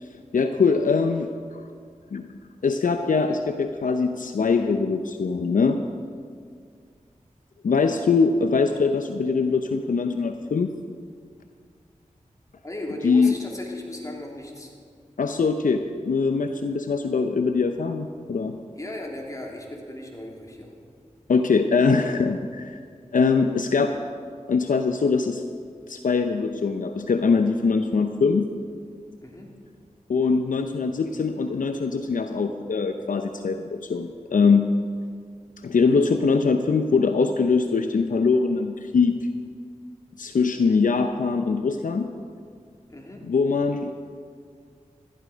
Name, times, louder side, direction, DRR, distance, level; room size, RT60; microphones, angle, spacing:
voice 1, 0.0-1.3 2.1-2.3 2.6-5.8 7.6-10.7 13.0-13.3 15.2-18.6 21.3-22.8 23.1-23.9 24.5-25.4 25.9-28.5 30.1-34.7 35.6-39.2 40.2-42.1 43.3-43.9, left 4 dB, 75° left, 7 dB, 0.7 m, -22 dB
voice 2, 12.6-14.7 18.8-20.7 29.2-29.5 42.9-43.2, left 1 dB, 25° left, -1 dB, 3.1 m, -36 dB
15.0 x 11.5 x 5.1 m, 2.1 s
cardioid pair, 40°, 14 cm